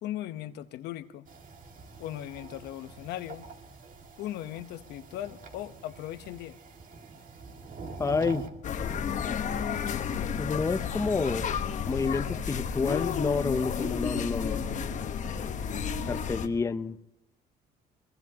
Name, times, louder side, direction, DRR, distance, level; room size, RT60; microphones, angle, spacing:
voice 1, 0.0-1.3 2.0-3.4 4.2-6.6, left 13 dB, 80° left, 10 dB, 1.0 m, -38 dB
sound 1, 1.3-8.5, right 4 dB, 50° right, 2.1 m, -45 dB
voice 2, 8.0-8.4 10.4-11.4 11.9-14.7 16.1-17.0, left 4 dB, 20° left, 10 dB, 0.7 m, -29 dB
sound 2, 8.6-16.5, left 7 dB, 45° left, 1.1 m, -32 dB
22.5 x 22.0 x 2.9 m, 0.80 s
cardioid pair, 110°, 17 cm